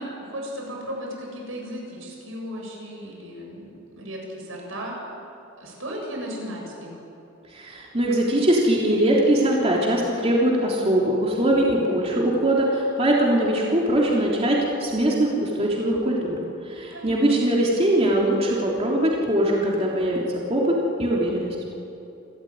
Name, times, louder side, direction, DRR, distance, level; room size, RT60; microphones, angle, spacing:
voice 1, 0.0-5.0 5.6-7.0 16.9-17.4, equal, 80° right, -1 dB, 7.5 m, -35 dB
voice 2, 7.5-16.4 16.6-21.5, right 1 dB, 30° right, -3 dB, 3.4 m, -21 dB
29.0 x 14.0 x 9.5 m, 2.8 s
head